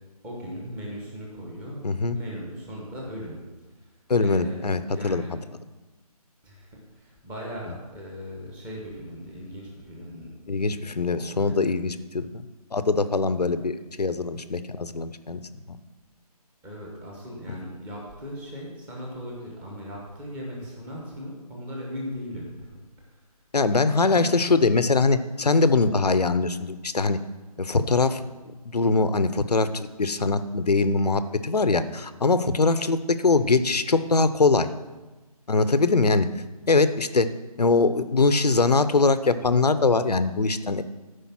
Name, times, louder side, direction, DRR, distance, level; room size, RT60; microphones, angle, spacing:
voice 1, 0.2-1.8 2.1-3.9 4.2-5.3 6.4-11.6 16.6-22.8 23.1-23.2 24.1-24.7, equal, 5° right, -3 dB, 1.0 m, -38 dB
voice 2, 1.8-2.2 4.1-5.2 10.5-12.4 12.7-15.4 15.7-15.8 23.5-27.2 27.6-34.7 35.5-36.3 36.7-37.3 37.6-40.8, left 3 dB, 85° left, 12 dB, 0.8 m, -22 dB
13.0 x 5.2 x 5.9 m, 1.2 s
figure-of-eight pair, 160°, 20 cm